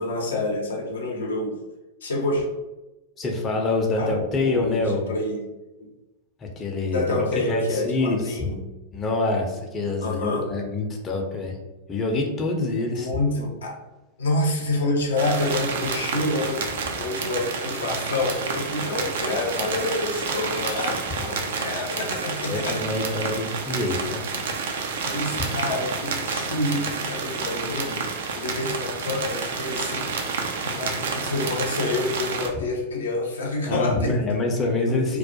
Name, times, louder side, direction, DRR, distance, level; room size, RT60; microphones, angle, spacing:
voice 1, 0.0-1.5 2.0-2.4 4.0-5.4 6.9-8.6 10.0-10.5 12.9-13.8 14.2-22.8 25.0-30.1 30.6-34.2 34.6-35.2, left 2 dB, 75° left, -1 dB, 0.5 m, -28 dB
voice 2, 3.2-5.1 6.4-8.4 8.9-11.6 11.9-13.1 22.5-24.2 33.7-35.2, left 2 dB, 25° left, 0 dB, 0.5 m, -26 dB
sound 1, 15.2-32.5, right 4 dB, 70° right, 0.3 m, -29 dB
2.2 x 2.0 x 2.7 m, 1.1 s
hypercardioid pair, 95°, 0 cm